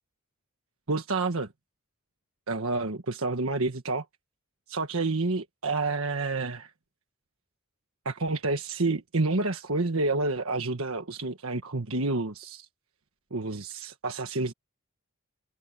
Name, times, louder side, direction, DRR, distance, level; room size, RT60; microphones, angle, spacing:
voice 1, 0.9-1.5 2.5-4.0 4.7-6.7 8.0-12.6 13.3-14.5, right 3 dB, 70° right, 1.5 m, -29 dB
head